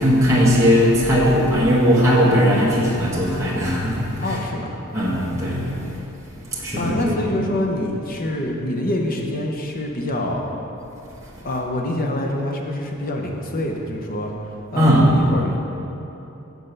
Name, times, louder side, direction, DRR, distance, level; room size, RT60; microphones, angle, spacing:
voice 1, 0.0-4.1 4.9-6.0 6.5-7.2 14.8-15.3, equal, 15° right, -7 dB, 1.2 m, -18 dB
voice 2, 4.2-4.7 6.8-10.6 11.4-15.6, left 1 dB, 40° left, 1 dB, 0.8 m, -26 dB
7.7 x 4.6 x 6.7 m, 2.9 s
head